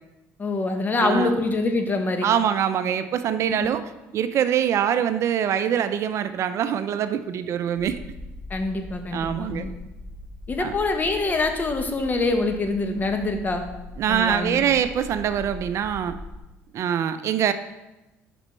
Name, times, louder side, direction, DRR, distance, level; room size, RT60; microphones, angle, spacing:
voice 1, 0.4-2.3 3.5-3.7 8.5-9.7 10.5-13.6 14.1-14.6, left 3 dB, 30° left, 5 dB, 1.0 m, -25 dB
voice 2, 1.0-1.4 2.2-3.8 4.1-8.0 9.1-9.7 10.6-10.7 14.0-16.2 16.7-17.5, right 9 dB, 55° right, 11 dB, 0.4 m, -24 dB
sound 1, 7.8-16.4, left 2 dB, 60° left, 1.2 m, -40 dB
5.3 x 4.9 x 5.3 m, 1.0 s
supercardioid pair, 80°, 6 cm